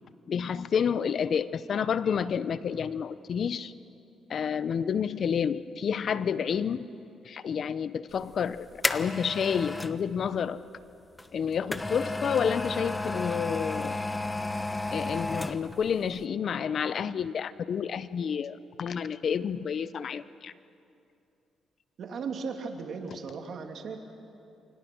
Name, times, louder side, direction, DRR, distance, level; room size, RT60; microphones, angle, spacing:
voice 1, 0.3-3.7 4.3-6.9 7.2-10.6 11.3-14.0 14.9-20.5, left 7 dB, 55° left, 15 dB, 0.8 m, -29 dB
sound 1, 8.2-10.0 11.2-15.8 16.2-16.3, left 2 dB, 15° left, 0.9 m, -32 dB
voice 2, 22.0-24.0, right 5 dB, 60° right, 4 dB, 2.7 m, -36 dB
28.5 x 24.5 x 6.2 m, 2.6 s
cardioid pair, 90°, 0 cm